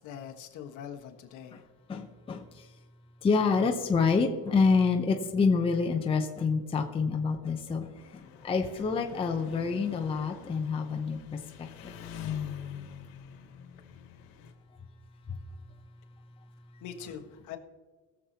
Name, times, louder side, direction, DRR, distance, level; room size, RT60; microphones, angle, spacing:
voice 1, 0.0-1.6 16.8-17.6, left 8 dB, 55° left, 3 dB, 1.4 m, -43 dB
voice 2, 1.9-2.4 3.2-7.9 8.4-11.2 11.8-11.9, left 4 dB, 15° left, 2 dB, 0.7 m, -27 dB
Engine, 8.0-14.5, left 8 dB, 75° left, 2.0 m, -43 dB
20.5 x 7.3 x 2.8 m, 1.4 s
cardioid pair, 155°, 35 cm